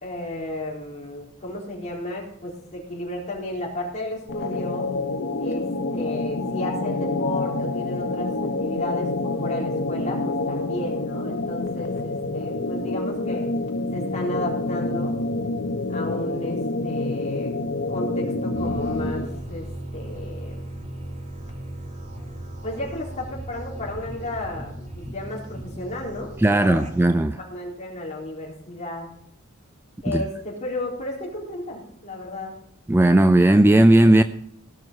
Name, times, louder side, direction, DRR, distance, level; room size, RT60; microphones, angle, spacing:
voice 1, 0.0-4.9 5.4-5.7 5.9-13.5 13.9-15.1 15.9-17.5 17.9-19.7 19.9-20.6 22.6-26.9 27.4-29.1 30.0-32.5, left 1 dB, 30° left, 3.9 m, -33 dB
sound 1, 4.3-19.4, left 2 dB, 60° left, 1.0 m, -27 dB
sound 2, 18.5-27.0, right 1 dB, 35° right, 2.2 m, -37 dB
voice 2, 26.4-27.4 30.1-30.2 32.9-34.2, right 1 dB, 10° right, 0.3 m, -16 dB
17.0 x 6.5 x 5.7 m
head